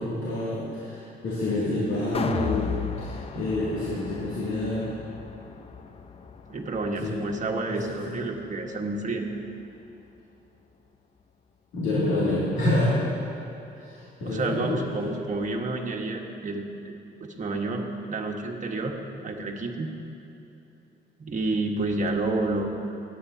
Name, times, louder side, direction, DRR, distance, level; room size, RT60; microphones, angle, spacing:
voice 1, 0.0-2.7 3.0-4.9 7.0-7.1 7.7-7.8 11.7-13.0 13.8-14.8, left 1 dB, 80° left, -9 dB, 2.5 m, -27 dB
sound 1, 2.1-8.4 8.8-8.9, left 5 dB, 30° left, 0.6 m, -35 dB
voice 2, 6.5-9.3 14.2-16.9 17.2-18.9 19.2-19.9 21.2-23.0, right 2 dB, 40° right, 1 dB, 1.5 m, -29 dB
19.0 x 9.4 x 2.9 m, 2.9 s
cardioid pair, 90°, 20 cm